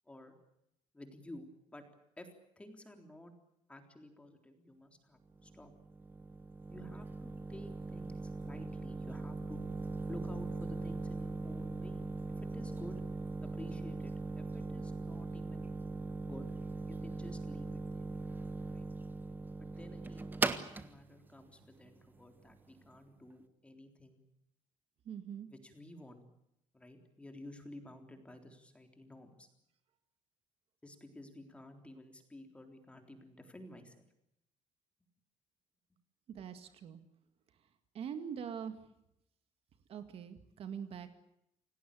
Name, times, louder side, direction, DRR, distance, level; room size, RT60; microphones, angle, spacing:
voice 1, 0.1-0.4 0.9-1.8 2.2-2.3 2.6-3.3 3.7-5.7 6.7-9.7 10.1-13.0 13.4-15.7 16.2-16.5 16.9-18.1 18.7-18.9 19.6-20.4 20.8-24.2 25.5-26.2 26.7-29.5 30.8-34.1, left 1 dB, 10° left, 5 dB, 3.7 m, -52 dB
sound 1, 5.3-22.9, right 3 dB, 15° right, 1.4 m, -40 dB
voice 2, 25.1-25.5 36.3-37.0 37.9-38.8 39.9-41.1, right 8 dB, 50° right, 9 dB, 2.1 m, -43 dB
28.5 x 18.0 x 8.5 m, 0.80 s
cardioid pair, 160°, 12 cm